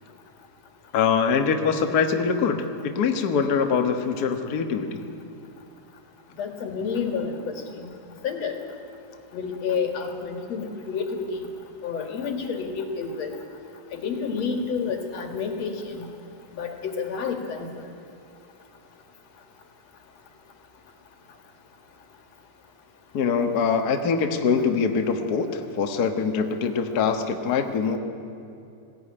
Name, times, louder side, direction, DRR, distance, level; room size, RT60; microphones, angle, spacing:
voice 1, 0.9-5.1 23.1-28.0, left 6 dB, 85° left, 5 dB, 0.8 m, -23 dB
voice 2, 6.4-7.5 7.8-7.9 8.2-8.6 9.3-11.5 11.8-13.3 13.9-16.1 16.5-17.7, left 5 dB, 55° left, 4 dB, 2.8 m, -29 dB
20.5 x 16.5 x 9.9 m, 2.7 s
omnidirectional pair, 4.0 m